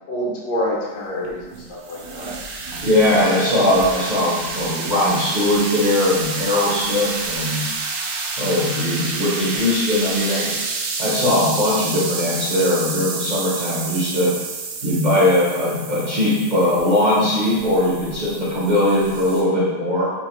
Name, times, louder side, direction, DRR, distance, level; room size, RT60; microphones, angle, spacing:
voice 1, 0.1-2.3, equal, 75° left, -3 dB, 1.4 m, -27 dB
sound 1, 1.2-19.4, right 4 dB, 80° right, 1.2 m, -29 dB
voice 2, 2.8-7.7 8.4-10.6 11.0-14.3 14.8-20.1, left 1 dB, 50° right, -8 dB, 0.5 m, -20 dB
3.7 x 2.5 x 3.0 m, 1.2 s
omnidirectional pair, 2.0 m